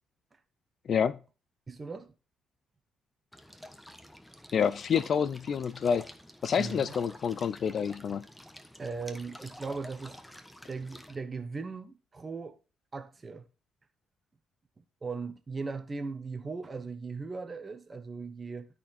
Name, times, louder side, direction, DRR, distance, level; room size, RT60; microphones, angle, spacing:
voice 1, 1.7-2.1 6.5-6.8 8.8-10.2 10.6-12.6 12.9-13.5 15.0-18.7, right 4 dB, 30° right, 1.2 m, -38 dB
sound 1, 3.3-11.1, equal, 5° left, 1.3 m, -49 dB
voice 2, 4.5-6.0 6.4-8.2, left 7 dB, 55° left, 0.5 m, -28 dB
13.0 x 4.4 x 4.3 m
cardioid pair, 90°, 0 cm